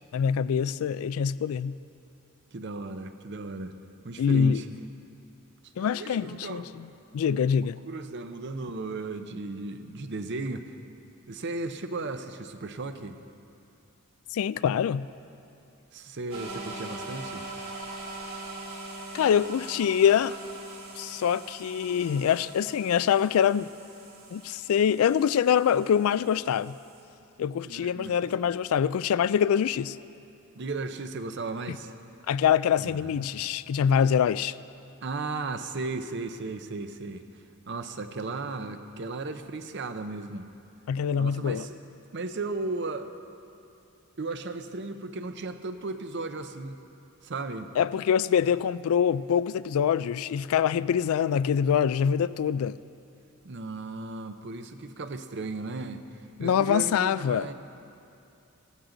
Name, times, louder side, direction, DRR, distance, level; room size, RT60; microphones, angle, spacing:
voice 1, 0.1-1.8 4.2-4.6 5.8-6.9 7.1-7.8 14.3-15.1 19.1-20.3 21.0-23.7 24.3-26.7 27.4-30.0 32.3-34.6 40.9-41.7 47.8-52.8 56.4-57.5, left 8 dB, 75° left, 18 dB, 0.3 m, -24 dB
voice 2, 2.5-3.8 4.0-4.7 5.6-6.9 7.6-10.7 11.3-13.2 15.9-17.5 27.7-28.5 30.6-31.9 32.8-33.3 35.0-40.5 41.1-41.8 42.1-43.1 44.2-46.8 47.2-47.7 53.4-57.5, right 3 dB, 55° right, 9 dB, 0.7 m, -36 dB
sound 1, 16.3-27.0, right 2 dB, 70° right, 3.5 m, -42 dB
16.5 x 14.0 x 3.9 m, 2.6 s
head